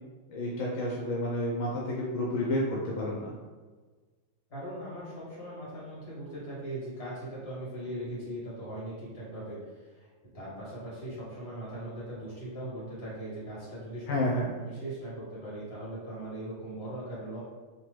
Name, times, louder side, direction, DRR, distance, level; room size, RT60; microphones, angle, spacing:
voice 1, 0.3-3.3 14.1-14.5, left 1 dB, 85° left, -4 dB, 1.0 m, -30 dB
voice 2, 4.5-10.1 10.3-14.3 14.6-17.4, right 1 dB, 55° left, -8 dB, 1.6 m, -40 dB
2.9 x 2.2 x 3.1 m, 1.4 s
omnidirectional pair, 1.3 m